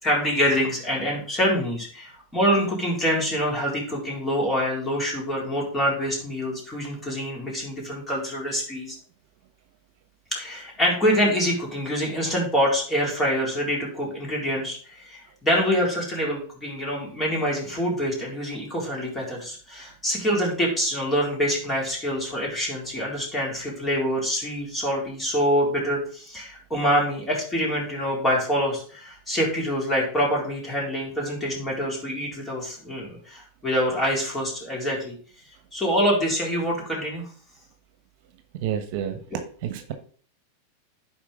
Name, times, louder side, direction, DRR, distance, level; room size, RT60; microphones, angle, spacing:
voice 1, 0.0-9.0 10.3-35.1 35.7-37.3, equal, 15° left, -3 dB, 4.0 m, -25 dB
voice 2, 38.6-39.2 39.6-39.9, right 9 dB, 60° right, 8 dB, 1.1 m, -29 dB
11.0 x 4.5 x 3.6 m, 0.44 s
hypercardioid pair, 115°, 0 cm